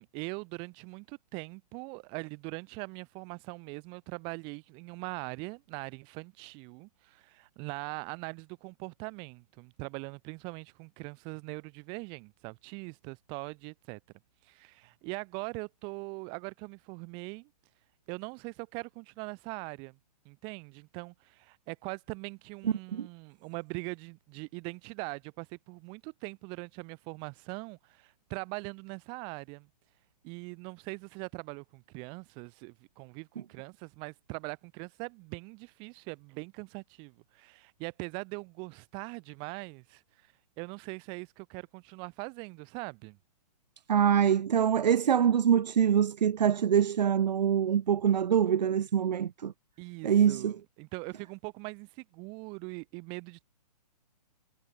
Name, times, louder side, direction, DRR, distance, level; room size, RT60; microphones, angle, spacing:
voice 1, 0.0-14.0 14.4-17.5 18.1-20.0 20.2-29.7 30.2-40.0 40.6-43.2 49.8-53.4, right 32 dB, 25° right, 3.4 m, -41 dB
voice 2, 22.6-23.1 43.9-49.5 50.0-50.6, right 8 dB, 90° right, 0.7 m, -25 dB
hypercardioid pair, 165°, 21 cm